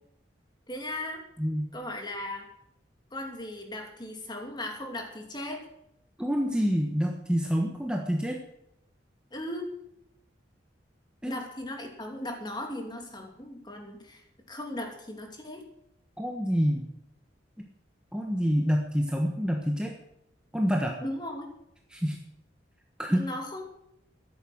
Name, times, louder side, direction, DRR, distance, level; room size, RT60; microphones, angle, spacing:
voice 1, 0.7-1.2 1.7-2.5 3.1-5.7 9.3-9.7 11.2-14.2 14.5-15.7 21.0-21.5 23.1-23.6, left 1 dB, 25° left, 3 dB, 2.8 m, -37 dB
voice 2, 1.4-1.7 6.2-8.4 11.2-11.4 16.2-16.8 18.1-19.9 20.5-21.0 21.9-22.2 23.0-23.3, equal, 5° right, 1 dB, 1.4 m, -27 dB
13.5 x 11.0 x 7.9 m, 0.77 s
head